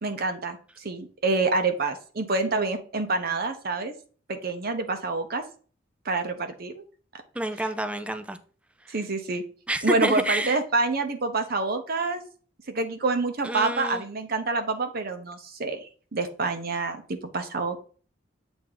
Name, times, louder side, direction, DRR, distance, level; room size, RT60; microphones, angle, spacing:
voice 1, 0.0-3.9 4.3-5.4 6.0-6.8 8.9-9.4 9.8-12.2 12.7-17.8, right 3 dB, 50° right, 0.8 m, -27 dB
voice 2, 7.3-8.4 9.7-10.6 13.4-14.0, right 1 dB, 5° right, 0.5 m, -28 dB
8.0 x 3.5 x 3.8 m
head